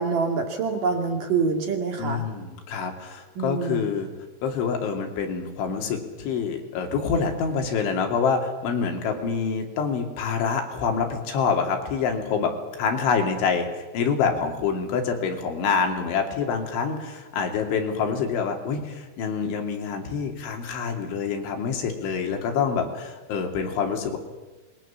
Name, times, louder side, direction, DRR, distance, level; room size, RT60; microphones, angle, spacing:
voice 1, 0.0-2.2 3.4-3.9, right 4 dB, 50° right, 4 dB, 3.3 m, -26 dB
voice 2, 2.0-4.1 4.4-12.5 12.8-24.2, left 5 dB, 75° left, 3 dB, 5.2 m, -26 dB
26.5 x 22.0 x 7.3 m, 1.2 s
omnidirectional pair, 5.5 m